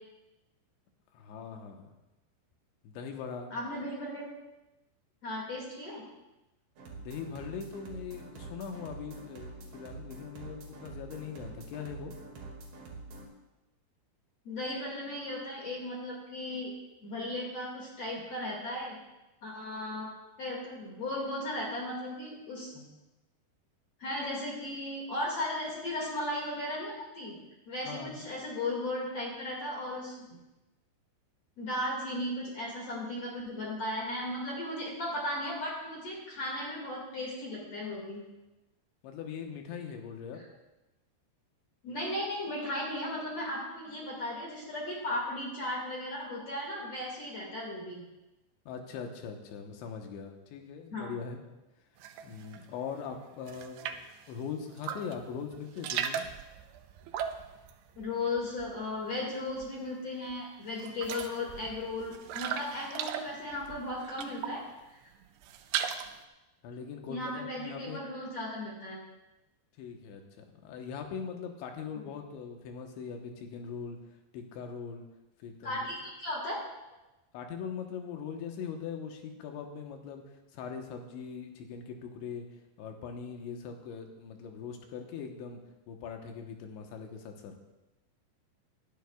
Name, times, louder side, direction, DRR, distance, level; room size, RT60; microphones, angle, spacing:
voice 1, 1.1-2.0 2.8-3.5 7.0-12.1 27.9-28.3 39.0-40.4 48.7-51.4 52.2-56.3 66.6-68.0 69.8-74.0 74.3-75.1 75.4-75.8 77.3-80.2 80.5-82.5 82.8-85.6 85.9-87.6, left 6 dB, 85° left, 3 dB, 3.5 m, -41 dB
voice 2, 3.5-4.3 5.2-6.0 14.4-16.7 17.0-19.0 19.4-20.1 20.4-22.9 24.0-27.4 27.7-30.4 31.6-38.2 41.8-48.0 50.9-51.1 58.0-64.6 67.1-69.0 72.0-72.1 75.6-76.6, left 1 dB, 45° left, -3 dB, 2.7 m, -36 dB
sound 1, 6.8-13.3, right 2 dB, 65° right, 3.8 m, -46 dB
sound 2, 52.0-52.6 53.0-54.2 54.7-55.3 55.5-59.0 59.2-59.9 60.3-60.4 60.7-64.7 65.1-66.2, right 9 dB, 85° right, 2.8 m, -38 dB
20.0 x 12.0 x 2.4 m, 1.0 s
omnidirectional pair, 5.1 m